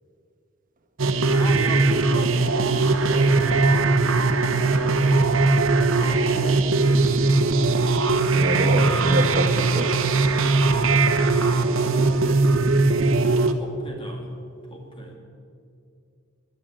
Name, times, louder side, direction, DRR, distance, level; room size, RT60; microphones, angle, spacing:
sound 1, 1.0-13.5, right 3 dB, 75° right, 1.0 m, -20 dB
voice 1, 1.3-5.2 5.9-7.5 10.3-11.0 11.4-12.5 13.2-14.3 14.7-15.2, equal, 25° left, 1 dB, 2.3 m, -37 dB
voice 2, 8.3-10.1, right 1 dB, 40° right, 6 dB, 1.3 m, -26 dB
12.5 x 11.0 x 8.7 m, 2.4 s
head